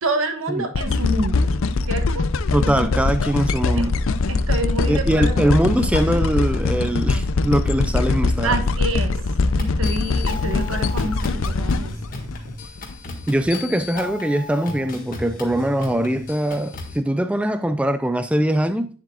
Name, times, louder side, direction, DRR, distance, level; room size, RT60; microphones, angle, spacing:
voice 1, 0.0-1.6 1.9-2.3 2.6-2.9 3.8-3.9 4.3-5.4 8.4-9.2 9.6-11.9, right 2 dB, 75° right, 1.4 m, -27 dB
sound 1, 0.7-12.9 13.5-13.6, left 3 dB, 75° left, 0.5 m, -22 dB
voice 2, 2.5-4.0 4.9-8.6 13.3-18.9, right 1 dB, 5° right, 0.3 m, -22 dB
sound 2, 9.6-17.0, left 3 dB, 40° left, 1.7 m, -35 dB
10.0 x 7.1 x 2.4 m
head